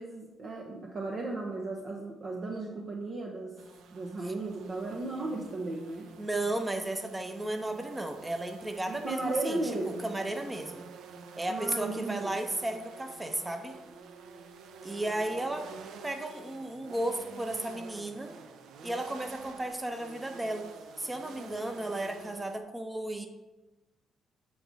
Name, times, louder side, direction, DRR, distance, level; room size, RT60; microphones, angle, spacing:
voice 1, 0.0-3.6 3.9-6.1 8.9-10.1 11.5-12.4, right 2 dB, 50° right, 0 dB, 0.9 m, -35 dB
sound 1, 3.6-22.6, right 5 dB, 80° right, 0.6 m, -49 dB
voice 2, 6.2-9.6 10.0-10.8 11.3-13.8 14.8-15.7 16.0-18.3 18.8-20.7 21.0-23.3, right 1 dB, 15° right, 6 dB, 0.8 m, -34 dB
7.9 x 4.8 x 4.0 m, 1.1 s
cardioid pair, 90°, 0 cm